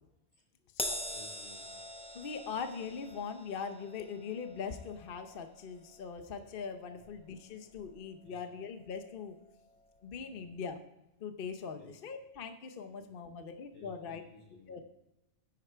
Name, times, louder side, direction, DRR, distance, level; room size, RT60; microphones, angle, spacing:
Crash cymbal, 0.8-7.4 7.7-8.0 9.0-9.1, equal, 5° left, 0.7 m, -44 dB
voice 1, 1.1-1.8 6.9-7.0 8.2-8.4 10.1-10.5 11.7-11.9 12.9-13.1 13.7-14.7, left 1 dB, 85° left, -4 dB, 5.3 m, -57 dB
voice 2, 2.1-9.4 10.0-10.8 11.2-14.2 14.7-14.8, left 6 dB, 50° left, 7 dB, 0.9 m, -41 dB
10.0 x 9.1 x 4.5 m, 0.93 s
omnidirectional pair, 1.3 m